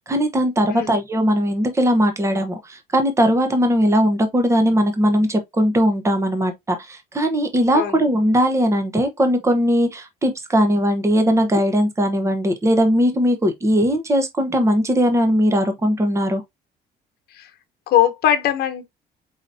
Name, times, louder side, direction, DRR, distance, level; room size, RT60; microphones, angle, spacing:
voice 1, 0.1-16.4, equal, 15° right, 1.0 m, -19 dB
voice 2, 17.9-18.8, left 11 dB, 70° left, 1.1 m, -20 dB
4.9 x 4.0 x 2.7 m
cardioid pair, 110°, 17 cm